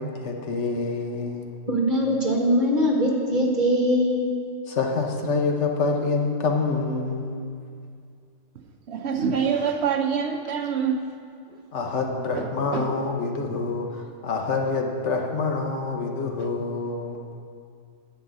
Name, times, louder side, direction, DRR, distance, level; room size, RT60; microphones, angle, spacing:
voice 1, 0.0-1.5 4.7-7.5 11.7-17.2, left 4 dB, 70° left, 2 dB, 1.3 m, -27 dB
voice 2, 1.7-4.3, equal, 40° right, -1 dB, 1.6 m, -22 dB
voice 3, 8.9-11.0 11.5-11.6 12.3-13.0 16.4-16.5, right 6 dB, 65° right, 4 dB, 0.8 m, -26 dB
11.0 x 4.7 x 8.2 m, 2.3 s
omnidirectional pair, 1.3 m